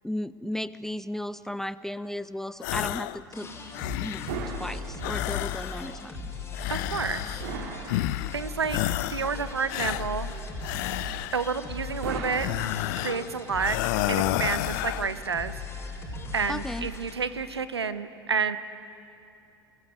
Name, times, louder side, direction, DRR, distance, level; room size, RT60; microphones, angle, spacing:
voice 1, 0.0-3.5 4.0-4.2 4.6-6.2 16.5-16.9, left 1 dB, 5° left, 16 dB, 0.5 m, -34 dB
sound 1, 2.6-3.2 3.5-4.4 5.0-6.0 6.5-7.5 7.9-8.4 8.7-9.3 9.7-11.5 12.3-13.3 13.6-15.1, left 18 dB, 50° left, 0.6 m, -31 dB
sound 2, 3.3-17.1, left 3 dB, 20° left, 5.4 m, -38 dB
sound 3, 4.3-5.5 7.4-8.6 12.0-13.3, right 5 dB, 55° right, 2.7 m, -37 dB
voice 2, 6.7-8.0 8.3-8.8 9.1-10.3 11.3-12.5 13.0-13.8 14.1-15.5 16.3-18.6, right 5 dB, 80° right, 13 dB, 1.0 m, -30 dB
25.5 x 20.0 x 8.0 m, 2.7 s
figure-of-eight pair, 80°, 13 cm